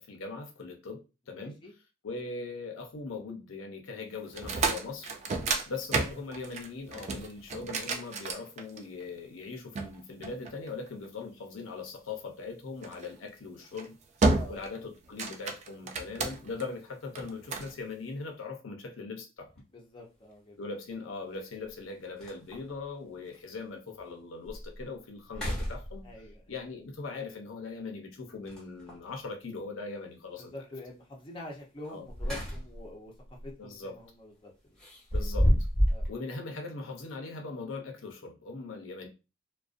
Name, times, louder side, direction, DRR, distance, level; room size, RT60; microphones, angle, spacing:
voice 1, 0.0-1.6 2.0-5.1 5.7-14.0 14.5-19.5 20.6-26.1 26.5-30.6 31.9-32.1 33.6-34.0 35.1-35.5 36.1-39.1, left 4 dB, 75° left, 0.6 m, -40 dB
voice 2, 1.3-1.7 5.3-5.5 14.2-14.6 15.8-15.9 19.7-20.6 26.0-26.4 30.4-34.8 35.9-36.1, left 1 dB, 25° left, 0.5 m, -46 dB
sound 1, 4.3-9.0 9.8-11.1 12.8-13.1 13.6-13.9 14.2-14.8 15.0-16.6 17.2-17.7, right 3 dB, 35° right, 0.3 m, -31 dB
sound 2, 19.5-19.6 21.3-21.4 21.8-21.9 22.2-22.8 23.3-23.4 24.0-24.1 24.5-24.8 25.2-26.3 28.4-29.1 31.8-32.9 33.3-33.5 34.8-36.1, equal, 5° left, 0.8 m, -30 dB
2.4 x 2.2 x 2.4 m
head